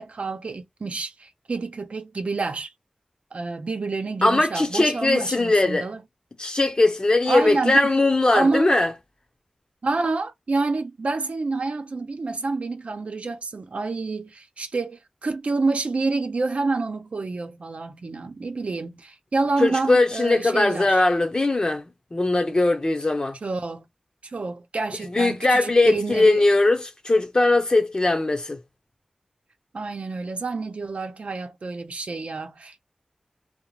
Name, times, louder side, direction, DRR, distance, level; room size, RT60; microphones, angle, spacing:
voice 1, 0.0-2.7 3.3-6.0 7.3-7.9 8.3-8.7 9.8-21.0 23.4-23.9 24.3-26.4 29.7-32.8, right 3 dB, 70° right, 0.7 m, -28 dB
voice 2, 4.2-5.9 6.4-8.9 19.6-23.4 25.1-28.6, left 2 dB, 40° left, 0.8 m, -20 dB
2.4 x 2.1 x 3.1 m
wide cardioid pair, 80°, 2 cm